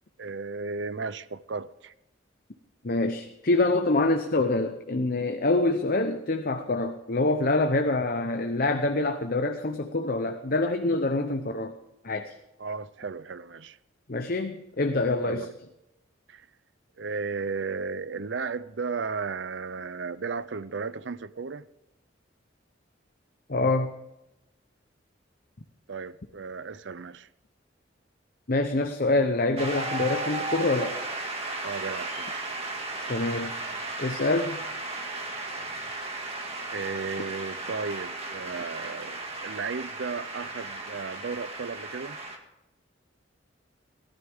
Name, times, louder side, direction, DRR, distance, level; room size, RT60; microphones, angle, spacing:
voice 1, 0.2-1.9 12.6-13.8 15.2-15.5 16.3-16.5 17.0-21.7 25.9-27.3 31.6-32.3 36.7-42.2, right 4 dB, 65° right, 0.6 m, -34 dB
voice 2, 2.8-11.7 12.0-12.3 14.1-15.5 23.5-23.9 28.5-31.0 33.1-33.5 34.0-34.6, left 2 dB, 50° left, 0.9 m, -26 dB
Shout / Cheering / Applause, 29.6-42.4, right 2 dB, 30° right, 2.1 m, -35 dB
18.0 x 13.0 x 3.6 m
head